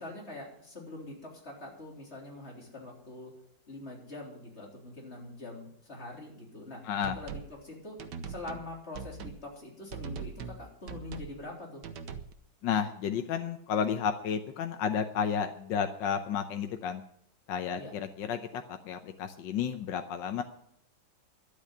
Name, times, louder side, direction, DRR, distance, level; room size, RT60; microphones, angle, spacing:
voice 1, 0.0-3.3 3.7-6.8 7.1-8.0 8.3-11.8 17.7-17.9, left 2 dB, 35° left, -1 dB, 3.9 m, -44 dB
voice 2, 6.8-7.2 12.6-17.0 17.5-20.4, left 7 dB, 85° left, 7 dB, 1.6 m, -32 dB
sound 1, 7.0-7.5 8.0-8.7 8.9-9.4 9.9-10.6 10.9-11.4 11.8-12.3, right 6 dB, 70° right, 1.6 m, -41 dB
12.0 x 8.5 x 9.8 m, 0.71 s
omnidirectional pair, 2.0 m